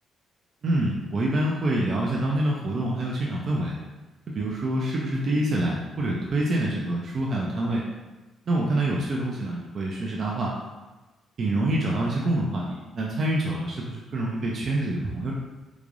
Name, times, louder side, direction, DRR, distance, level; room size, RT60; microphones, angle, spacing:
voice 1, 0.6-3.7 4.3-7.8 8.5-10.5 11.4-12.7 12.9-15.3, right 1 dB, 50° right, -3 dB, 0.5 m, -26 dB
3.6 x 3.1 x 2.5 m, 1.2 s
cardioid pair, 90°, 0 cm